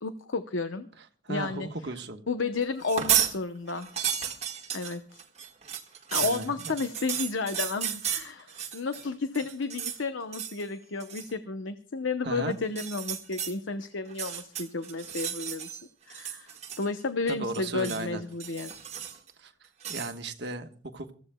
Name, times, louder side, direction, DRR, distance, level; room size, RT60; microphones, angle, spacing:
voice 1, 0.0-0.9 1.3-1.7 2.3-3.9 4.7-5.2 6.1-15.8 16.1-18.7, left 4 dB, 80° left, 9 dB, 0.8 m, -32 dB
voice 2, 1.2-2.2 6.2-6.7 12.2-12.6 17.3-18.2 19.4-21.1, right 2 dB, 60° right, 5 dB, 1.3 m, -36 dB
sound 1, 2.8-3.3 3.7-9.0 9.3-10.0 10.3-10.6 11.0-11.3 12.6-13.5 14.1-15.8 16.1-17.0 17.3-18.0 18.4-19.3 19.8-20.1, right 9 dB, 35° right, 1.7 m, -33 dB
26.5 x 15.0 x 2.3 m, 0.42 s
head